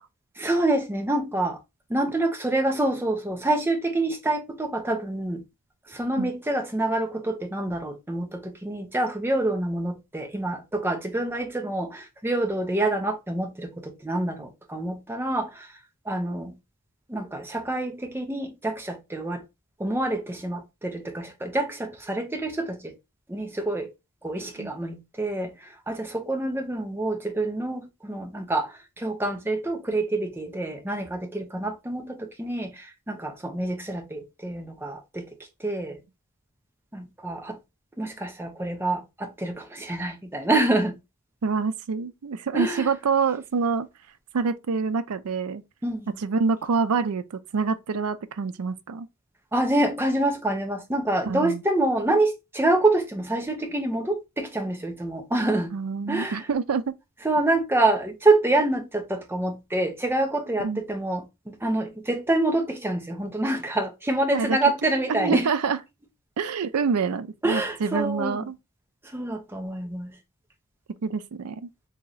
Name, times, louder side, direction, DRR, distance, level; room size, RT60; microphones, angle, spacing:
voice 1, 0.4-1.6 1.9-5.4 5.9-15.7 16.1-16.6 17.1-19.4 19.8-22.9 23.3-23.9 24.2-35.3 35.6-36.0 36.9-37.6 38.0-41.0 42.5-42.9 45.8-46.2 49.5-55.7 56.1-56.4 57.2-65.5 67.4-68.4 69.0-70.2, right 2 dB, 10° right, 0.7 m, -27 dB
voice 2, 41.4-43.9 44.3-45.6 46.2-49.1 51.2-51.6 55.7-56.8 60.6-60.8 64.3-64.6 65.1-65.8 66.4-68.5 71.0-71.7, right 5 dB, 85° right, 0.5 m, -26 dB
3.1 x 2.8 x 3.9 m
head